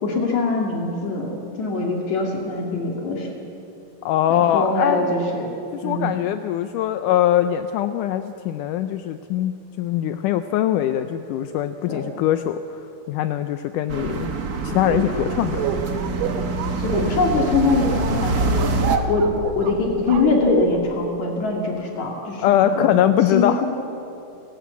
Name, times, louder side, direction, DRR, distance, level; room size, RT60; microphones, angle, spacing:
voice 1, 0.0-3.3 4.3-5.5 5.8-6.1 11.9-12.0 16.8-18.8 19.1-23.0 23.3-23.7, left 3 dB, 60° left, 0 dB, 3.6 m, -23 dB
voice 2, 4.1-5.1 5.7-12.8 13.1-14.3 14.6-15.6 22.4-23.6, left 11 dB, 80° left, 10 dB, 2.1 m, -22 dB
sound 1, 13.9-19.0, right 3 dB, 65° right, 0.9 m, -25 dB
sound 2, 14.7-21.0, right 5 dB, 90° right, 2.9 m, -29 dB
29.0 x 13.5 x 8.3 m, 2.8 s
omnidirectional pair, 3.8 m